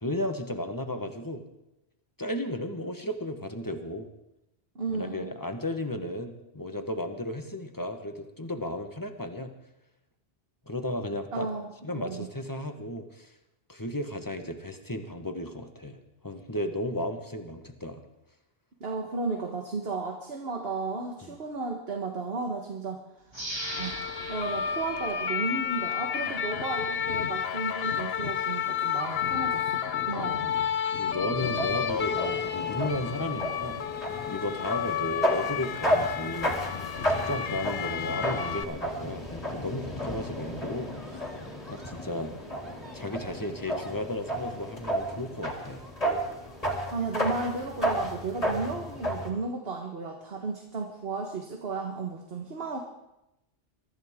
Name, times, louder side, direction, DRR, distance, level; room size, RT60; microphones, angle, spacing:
voice 1, 0.0-1.5 2.2-4.1 4.9-9.5 10.6-11.5 11.8-13.3 13.7-18.0 21.2-21.3 31.0-41.3 41.7-42.3 42.9-45.9, left 1 dB, 20° left, 6 dB, 1.2 m, -34 dB
voice 2, 4.7-5.3 11.3-11.7 11.9-12.3 18.8-23.0 23.8-30.5 46.9-52.8, right 3 dB, 70° right, 2 dB, 1.6 m, -34 dB
sound 1, 23.3-26.0 26.5-26.6, right 1 dB, 25° right, 2.2 m, -40 dB
sound 2, 23.6-38.6, left 8 dB, 70° left, 1.1 m, -31 dB
sound 3, 31.4-49.3, equal, 35° left, 3.1 m, -33 dB
23.5 x 14.0 x 3.7 m, 0.89 s
omnidirectional pair, 1.0 m